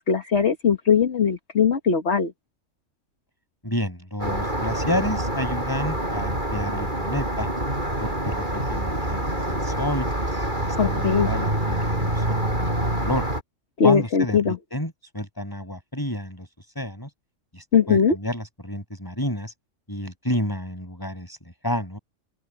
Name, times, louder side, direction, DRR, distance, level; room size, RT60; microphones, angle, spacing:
voice 1, 0.0-2.3 10.8-11.3 13.8-14.6 17.7-18.2, left 6 dB, 60° left, 1.8 m, -20 dB
voice 2, 3.6-7.5 8.0-10.1 10.5-13.3 13.8-16.5 16.8-17.1 17.5-19.5 19.9-21.4 21.6-22.0, equal, 15° left, 7.3 m, -30 dB
sound 1, 4.2-13.4, right 1 dB, 40° right, 6.7 m, -26 dB
open air
omnidirectional pair, 1.3 m